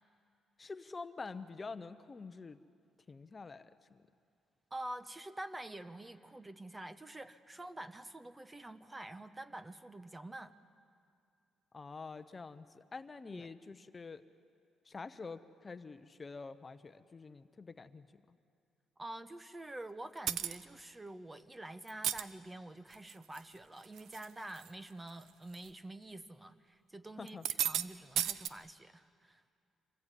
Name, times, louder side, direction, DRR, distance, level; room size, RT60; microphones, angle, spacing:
voice 1, 0.6-2.6 3.1-4.0 11.7-14.2 14.8-18.4 27.2-27.5, left 4 dB, 30° left, 11 dB, 0.9 m, -47 dB
voice 2, 4.7-10.5 13.3-13.5 19.0-29.5, right 1 dB, 15° right, 11 dB, 1.0 m, -47 dB
sound 1, 20.3-20.6 21.9-22.2 22.9-23.4 23.8-24.3 24.6-24.7 25.5-25.7 27.3-27.8 28.2-28.5, right 10 dB, 80° right, 0.7 m, -34 dB
26.0 x 20.5 x 8.4 m, 2.4 s
cardioid pair, 90°, 0 cm